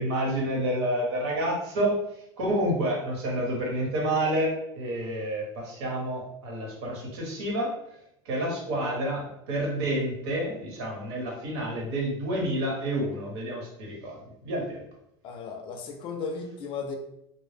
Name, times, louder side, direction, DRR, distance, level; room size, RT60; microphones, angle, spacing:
voice 1, 0.0-2.0 2.4-7.7 8.2-14.2 14.4-14.8, right 1 dB, 80° right, -1 dB, 1.0 m, -29 dB
voice 2, 15.2-17.0, left 5 dB, 40° left, 4 dB, 0.5 m, -35 dB
2.1 x 2.1 x 3.2 m, 0.79 s
supercardioid pair, 140°, 14 cm